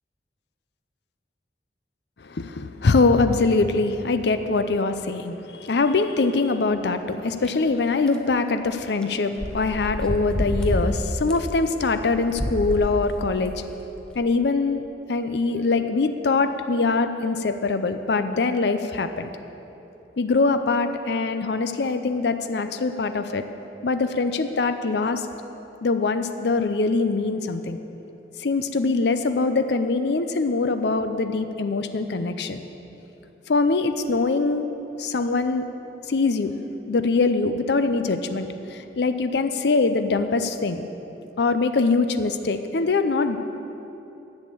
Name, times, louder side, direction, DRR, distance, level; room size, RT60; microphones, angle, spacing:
voice 1, 2.2-13.6 14.2-14.8 15.1-19.3 20.2-23.4 23.8-25.3 25.8-27.8 28.4-32.6 33.5-35.6 36.1-36.5 36.9-40.8 41.4-43.4, left 3 dB, 70° left, 9 dB, 0.5 m, -23 dB
sound 1, 7.5-7.6 8.1-8.2 9.0-9.1 9.4-10.9 11.3-11.4 12.1-12.9 13.4-13.5 14.1-14.2, equal, 5° left, 0.7 m, -27 dB
10.5 x 6.4 x 8.5 m, 3.0 s
head